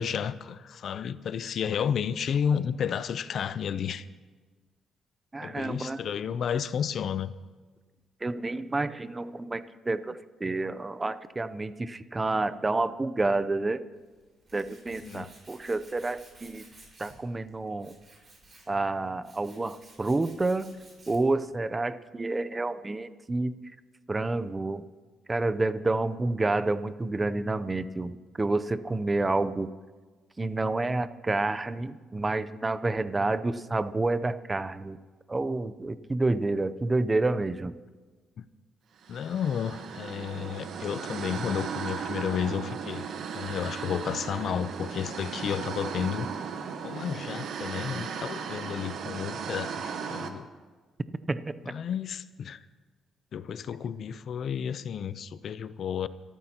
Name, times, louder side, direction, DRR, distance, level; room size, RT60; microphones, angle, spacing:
voice 1, 0.0-4.1 5.4-7.3 15.0-15.3 38.4-38.5 39.1-43.1 43.3-46.3 46.8-50.5 51.7-52.6 53.3-56.1, left 8 dB, 60° left, 0.6 m, -32 dB
voice 2, 5.3-6.0 8.2-13.8 14.5-16.6 17.0-18.0 18.7-20.7 21.1-23.8 24.1-24.9 25.3-29.7 30.4-35.0 35.3-37.8 51.3-51.8, right 2 dB, 20° right, 0.6 m, -29 dB
Tools, 13.9-21.4, right 2 dB, 40° right, 5.0 m, -55 dB
sound 1, 39.0-50.3, right 6 dB, 70° right, 1.2 m, -36 dB
25.0 x 13.5 x 2.9 m
cardioid pair, 90°, 0 cm